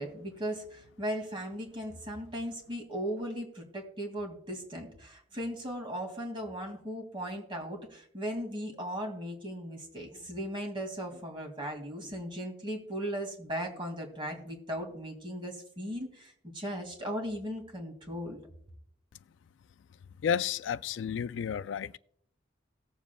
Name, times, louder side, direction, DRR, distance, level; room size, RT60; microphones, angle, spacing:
voice 1, 0.0-18.4, equal, 25° right, 2.2 m, -37 dB
voice 2, 20.2-22.0, left 8 dB, 80° left, 0.3 m, -31 dB
18.0 x 7.3 x 2.3 m
head